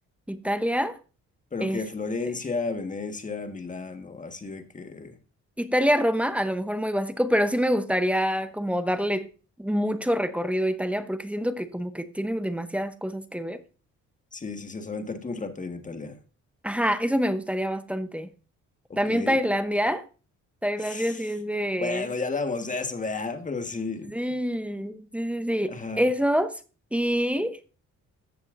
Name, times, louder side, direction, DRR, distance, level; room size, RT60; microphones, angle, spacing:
voice 1, 0.3-1.0 1.6-1.8 5.6-9.3 9.6-13.6 16.6-18.3 19.0-20.0 20.6-22.1 24.0-26.5 26.9-27.6, equal, 5° right, 0.8 m, -26 dB
voice 2, 1.5-5.1 14.3-16.2 19.0-19.4 20.8-21.3 21.8-24.1 25.7-26.1, left 3 dB, 25° left, 1.5 m, -32 dB
14.5 x 7.1 x 2.6 m
cardioid pair, 90°, 30 cm